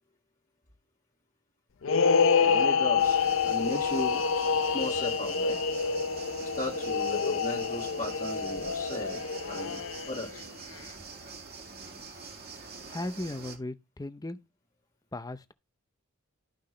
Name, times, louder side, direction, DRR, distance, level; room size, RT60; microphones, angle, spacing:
sound 1, 1.8-10.4, left 5 dB, 65° left, 0.5 m, -27 dB
voice 1, 2.4-4.3 4.7-5.6 6.4-9.8 10.1-10.4, left 2 dB, 35° left, 1.8 m, -36 dB
sound 2, 3.0-13.6, right 4 dB, 45° right, 2.2 m, -45 dB
voice 2, 12.9-14.4 15.1-15.5, left 1 dB, 15° left, 0.5 m, -37 dB
13.0 x 5.9 x 3.2 m
head